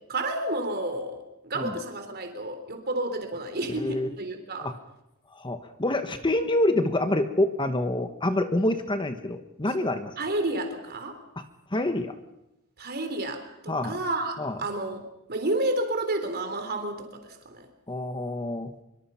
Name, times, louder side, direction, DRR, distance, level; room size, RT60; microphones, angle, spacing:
voice 1, 0.1-4.7 10.2-11.2 12.8-17.7, right 2 dB, 50° right, 6 dB, 3.7 m, -31 dB
voice 2, 3.7-4.1 4.6-4.8 5.3-10.1 11.4-11.5 11.7-12.1 13.7-14.0 14.4-14.6 17.9-18.7, left 1 dB, 20° left, 8 dB, 1.1 m, -27 dB
24.0 x 23.5 x 5.8 m, 0.92 s
head